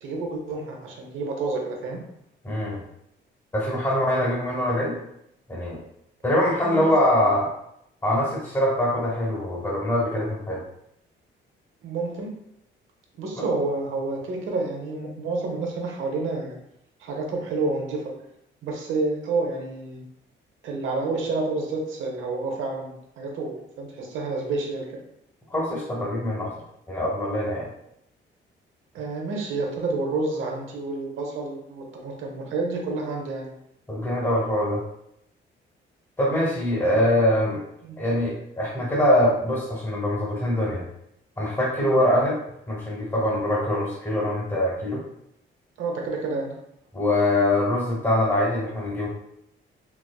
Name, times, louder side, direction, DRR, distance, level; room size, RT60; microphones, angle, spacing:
voice 1, 0.0-2.0 6.6-6.9 11.8-12.3 13.2-16.5 17.0-18.1 18.6-20.0 20.6-24.9 28.9-33.5 36.9-37.1 37.8-38.0 45.8-46.5, right 3 dB, 80° right, 1 dB, 0.8 m, -29 dB
voice 2, 2.4-2.8 3.5-5.0 5.5-5.8 6.2-7.5 8.0-10.6 25.5-26.5 26.9-27.7 33.9-34.8 36.2-37.6 38.0-40.8 41.4-42.4 42.7-45.0 46.9-49.1, left 1 dB, 15° left, -5 dB, 1.1 m, -23 dB
4.5 x 2.2 x 2.3 m, 0.77 s
cardioid pair, 90°, 20 cm